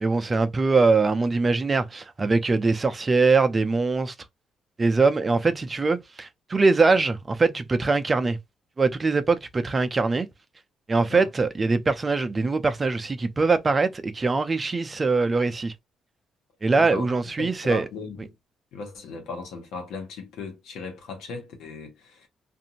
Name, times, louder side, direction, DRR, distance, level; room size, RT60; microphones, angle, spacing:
voice 1, 0.0-4.1 4.8-8.4 8.8-10.3 10.9-15.7 16.6-17.8, right 4 dB, 30° right, 0.5 m, -22 dB
voice 2, 17.4-18.3 18.7-22.3, left 4 dB, 85° left, 1.1 m, -37 dB
2.6 x 2.5 x 2.8 m
cardioid pair, 90°, 0 cm